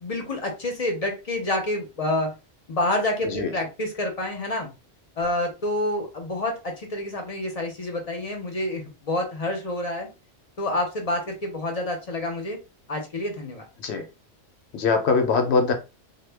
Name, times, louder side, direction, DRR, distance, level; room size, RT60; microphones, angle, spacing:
voice 1, 0.0-2.3 2.7-4.7 5.2-10.1 10.6-12.6 12.9-13.7, left 1 dB, 45° left, 3 dB, 0.6 m, -28 dB
voice 2, 14.7-15.7, left 4 dB, 75° left, 6 dB, 0.8 m, -22 dB
2.1 x 2.1 x 3.3 m, 0.30 s
omnidirectional pair, 1.2 m